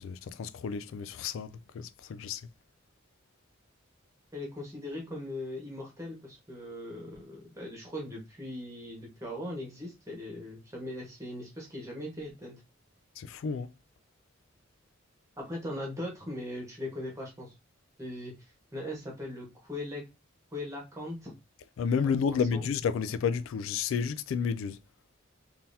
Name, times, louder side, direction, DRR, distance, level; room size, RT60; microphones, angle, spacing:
voice 1, 0.0-2.4 13.2-13.7 21.8-24.8, left 6 dB, 75° left, 0.3 m, -31 dB
voice 2, 4.3-12.5 15.4-17.5 18.0-18.3 18.7-20.0 20.5-21.3 22.0-22.6, left 1 dB, 15° right, 1.3 m, -39 dB
3.8 x 2.8 x 2.6 m
head